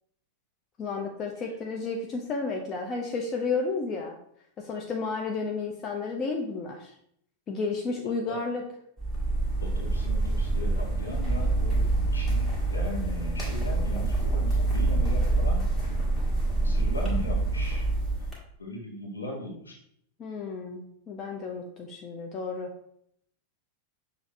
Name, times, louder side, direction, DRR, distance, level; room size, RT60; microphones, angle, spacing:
voice 1, 0.8-4.2 4.6-6.9 7.5-8.6 20.2-22.7, left 4 dB, 30° left, 1 dB, 0.5 m, -32 dB
sound 1, 9.0-18.3, right 2 dB, 15° left, 1.5 m, -26 dB
voice 2, 9.6-15.6 16.6-17.9 18.6-19.8, left 1 dB, 75° left, -1 dB, 0.9 m, -38 dB
6.2 x 2.5 x 3.1 m, 0.70 s
figure-of-eight pair, 90°, 0 cm